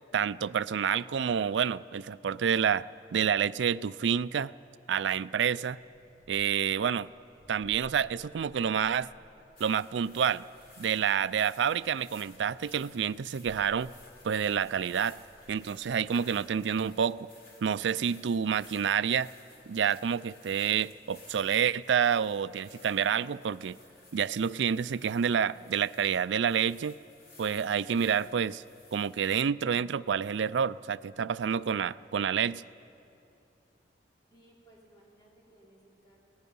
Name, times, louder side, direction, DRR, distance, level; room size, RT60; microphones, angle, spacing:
voice 1, 0.1-2.9 3.1-4.5 4.9-5.8 6.3-7.1 7.5-9.1 9.6-10.4 10.8-13.9 14.2-15.2 15.5-17.3 17.6-19.3 19.7-23.8 24.1-27.0 27.4-28.6 28.9-32.6, right 7 dB, 85° right, 17 dB, 0.4 m, -28 dB
sound 1, 5.8-16.0, equal, 40° left, 2.1 m, -59 dB
sound 2, 9.5-29.3, left 2 dB, 55° left, 3.7 m, -57 dB
voice 2, 34.3-36.2, right 1 dB, 25° left, -5 dB, 4.8 m, -60 dB
30.0 x 18.5 x 5.5 m, 2.7 s
head